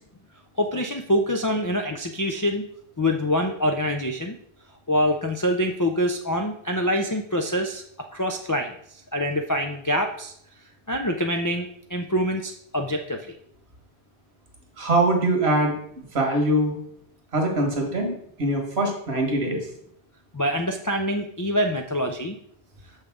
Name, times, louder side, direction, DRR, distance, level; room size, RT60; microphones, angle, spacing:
voice 1, 0.6-2.6 3.0-4.4 4.9-7.8 8.1-10.3 10.9-13.3 20.3-22.3, equal, 35° left, 3 dB, 0.3 m, -25 dB
voice 2, 14.8-15.8 16.1-16.8 17.3-19.6, right 1 dB, 70° right, 2 dB, 1.7 m, -23 dB
6.8 x 5.7 x 3.5 m, 0.68 s
omnidirectional pair, 1.1 m